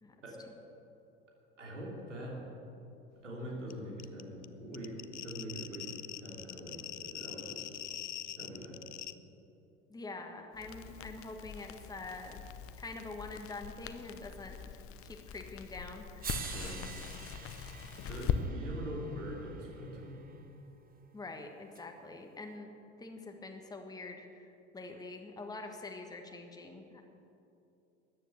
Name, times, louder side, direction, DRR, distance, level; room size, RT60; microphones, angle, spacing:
voice 1, 1.6-2.4 3.2-7.7 8.4-8.8 16.5-16.8 18.0-20.2, equal, 80° right, -2 dB, 3.1 m, -43 dB
sound 1, 3.7-3.8 4.0-9.1, left 11 dB, 75° left, 0.6 m, -43 dB
voice 2, 9.9-12.5 12.8-14.6 15.0-16.5 21.1-22.7 23.0-24.5 24.7-27.0, left 3 dB, 10° left, 3 dB, 1.5 m, -45 dB
Crackle, 10.5-18.4, left 9 dB, 40° left, 0.9 m, -41 dB
sound 2, 15.6-15.7 16.2-20.4 21.8-21.9, right 7 dB, 25° right, 1.1 m, -47 dB
14.0 x 9.9 x 7.9 m, 2.8 s
figure-of-eight pair, 65°, 36 cm